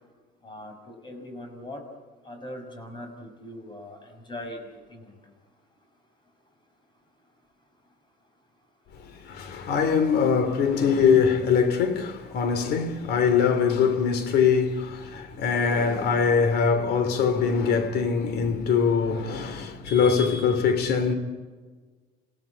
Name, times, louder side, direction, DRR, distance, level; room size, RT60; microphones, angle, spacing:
voice 1, 0.4-1.8 2.3-4.0 4.3-4.6 4.9-5.0, left 1 dB, 25° left, 6.0 m, -40 dB
voice 2, 9.0-21.1, left 6 dB, 70° left, 3.2 m, -23 dB
27.5 x 17.0 x 8.7 m
cardioid pair, 110°, 17 cm